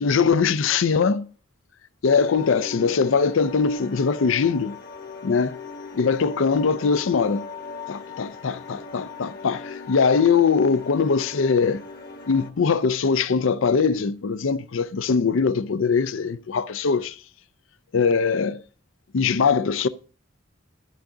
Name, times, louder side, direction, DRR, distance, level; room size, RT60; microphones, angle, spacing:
voice 1, 0.0-1.3 2.0-4.7 5.2-5.6 5.9-7.4 7.9-11.8 12.3-17.2 17.9-18.6 19.1-19.9, left 5 dB, 75° left, 0.5 m, -21 dB
sound 1, 2.0-12.5, left 4 dB, 45° left, 1.2 m, -39 dB
11.5 x 8.5 x 3.8 m
head